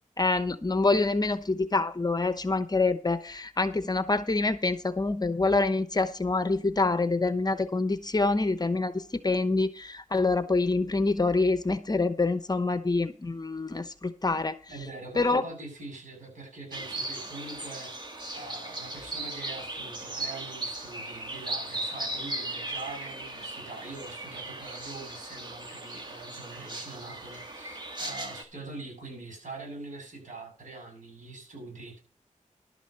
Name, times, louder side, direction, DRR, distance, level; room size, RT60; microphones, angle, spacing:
voice 1, 0.2-14.6 15.2-15.4, left 3 dB, 30° left, 11 dB, 0.9 m, -26 dB
voice 2, 14.7-18.1 18.3-32.0, right 3 dB, 75° right, 1 dB, 7.8 m, -43 dB
sound 1, 16.7-28.4, right 2 dB, 35° right, 2.2 m, -37 dB
12.0 x 6.2 x 6.6 m, 0.37 s
wide cardioid pair, 80°, 13 cm